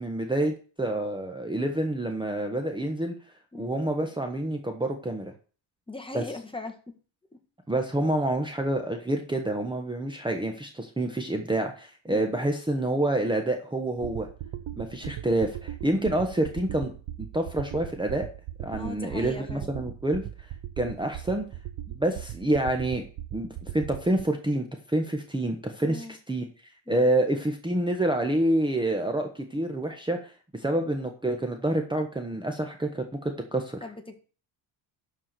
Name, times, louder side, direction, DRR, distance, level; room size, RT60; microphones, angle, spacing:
voice 1, 0.0-3.1 3.6-5.3 6.1-6.2 7.7-14.3 14.8-16.9 17.3-18.3 18.6-20.5 20.8-21.4 21.9-23.0 23.3-26.4 26.9-33.8, right 1 dB, 10° right, 4 dB, 1.4 m, -28 dB
voice 2, 5.9-6.9 7.3-7.4 12.1-12.3 18.7-19.7 25.8-26.2 26.9-27.1 33.8-34.2, left 2 dB, 10° left, 4 dB, 1.8 m, -39 dB
sound 1, 14.0-24.2, right 12 dB, 65° right, 1.1 m, -39 dB
12.0 x 4.9 x 6.8 m, 0.38 s
cardioid pair, 125°, 48 cm